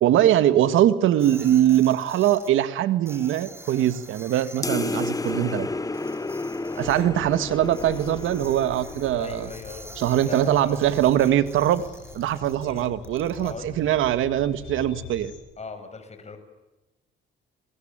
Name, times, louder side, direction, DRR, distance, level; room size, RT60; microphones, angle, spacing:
voice 1, 0.0-5.7 6.8-9.5 10.0-11.8 12.1-15.3, right 12 dB, 85° right, 13 dB, 1.8 m, -22 dB
sound 1, 1.2-2.5 3.0-5.3 5.9-7.0 7.6-13.5, right 1 dB, 10° right, 5.2 m, -46 dB
sound 2, 4.6-9.5, left 3 dB, 15° left, 1.1 m, -31 dB
sound 3, 6.8-15.4, left 8 dB, 75° left, 6.1 m, -44 dB
voice 2, 9.2-10.0 10.3-10.8 12.6-12.9 13.3-13.7 15.6-16.4, left 4 dB, 35° left, 8 dB, 6.3 m, -39 dB
30.0 x 21.5 x 8.9 m, 1.0 s
cardioid pair, 90°, 20 cm